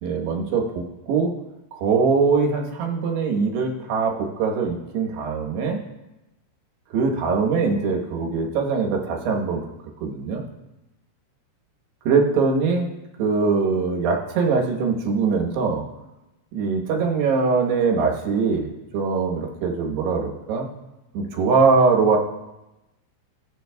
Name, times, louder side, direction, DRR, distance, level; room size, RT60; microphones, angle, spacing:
voice 1, 0.0-1.3 1.8-5.8 6.9-9.6 10.0-10.4 12.1-12.9 13.2-15.8 16.5-20.7 21.1-22.2, right 4 dB, 85° right, 1 dB, 3.4 m, -22 dB
16.5 x 9.5 x 2.3 m, 0.99 s
omnidirectional pair, 4.6 m